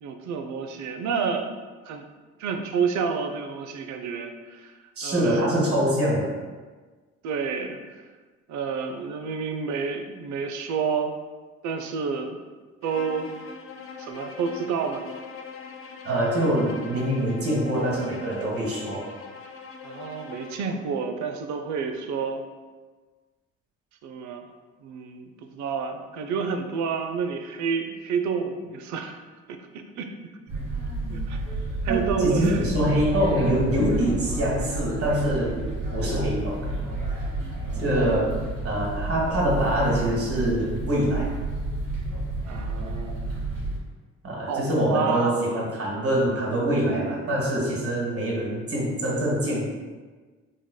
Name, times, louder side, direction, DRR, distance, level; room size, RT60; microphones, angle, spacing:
voice 1, 0.0-1.4 1.9-2.1 2.4-4.7 5.0-5.5 7.2-7.8 8.5-11.1 11.6-12.4 12.8-13.3 14.0-15.0 19.8-22.4 24.0-24.5 24.8-29.2 29.5-30.3 31.1-31.4 31.8-32.7 37.9-38.3 42.5-43.5 44.5-45.4, right 5 dB, 65° right, 6 dB, 0.5 m, -29 dB
voice 2, 5.0-6.3 16.0-19.1 31.9-35.6 35.9-36.6 37.7-38.4 38.6-41.3 44.2-49.7, right 1 dB, 45° right, -4 dB, 1.4 m, -24 dB
Bowed string instrument, 12.8-20.7, left 5 dB, 45° left, 0.5 m, -41 dB
sound 1, 30.5-43.8, right 2 dB, 85° right, 1.4 m, -30 dB
3.7 x 3.2 x 2.2 m, 1.4 s
supercardioid pair, 60°, 31 cm